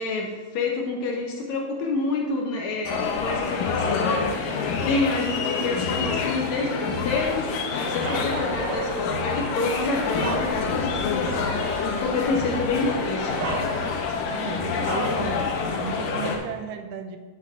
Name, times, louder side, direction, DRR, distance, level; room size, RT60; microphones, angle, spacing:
voice 1, 0.0-13.4, left 3 dB, 70° left, 0 dB, 1.8 m, -28 dB
sound 1, 2.8-16.4, left 5 dB, 90° left, 2.5 m, -27 dB
Wind instrument woodwind instrument, 7.7-13.9, right 4 dB, 30° right, 2.1 m, -40 dB
Bark, 8.0-9.1 9.7-10.9 11.4-11.5 12.7-12.8 13.4-14.2 14.8-15.3, right 3 dB, 65° right, 2.4 m, -32 dB
voice 2, 14.2-15.5 15.8-17.2, right 6 dB, 90° right, 6 dB, 2.2 m, -34 dB
8.9 x 8.6 x 2.4 m, 1.4 s
omnidirectional pair, 3.8 m